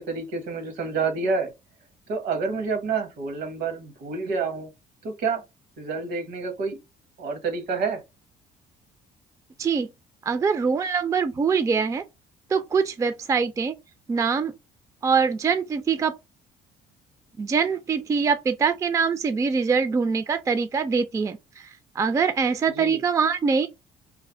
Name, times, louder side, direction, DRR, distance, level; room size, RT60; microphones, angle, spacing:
voice 1, 0.0-1.5 2.1-4.7 5.0-5.4 5.8-6.8 7.2-8.0 22.8-23.0, right 4 dB, 75° right, 1.1 m, -28 dB
voice 2, 10.2-12.0 12.5-13.7 14.1-14.5 15.0-16.1 17.4-21.7 22.0-23.7, right 5 dB, 20° right, 0.3 m, -23 dB
3.2 x 2.0 x 3.8 m
cardioid pair, 110°, 17 cm